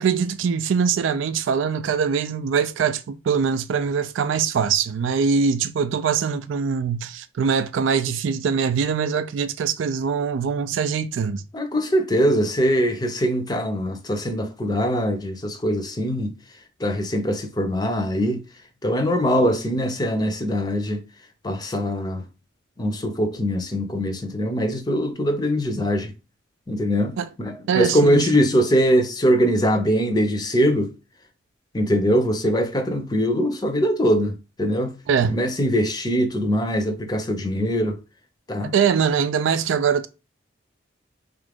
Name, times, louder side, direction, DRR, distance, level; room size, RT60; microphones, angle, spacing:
voice 1, 0.0-11.4 27.2-27.3 27.7-28.5 35.1-35.4 38.7-40.1, right 6 dB, 85° right, 0.3 m, -23 dB
voice 2, 11.5-16.3 16.8-18.4 18.8-21.0 21.4-22.2 22.8-26.1 26.7-27.1 27.4-30.9 31.7-34.9 35.3-38.0 38.5-38.7, equal, 20° left, 0.5 m, -22 dB
3.7 x 2.5 x 3.4 m
head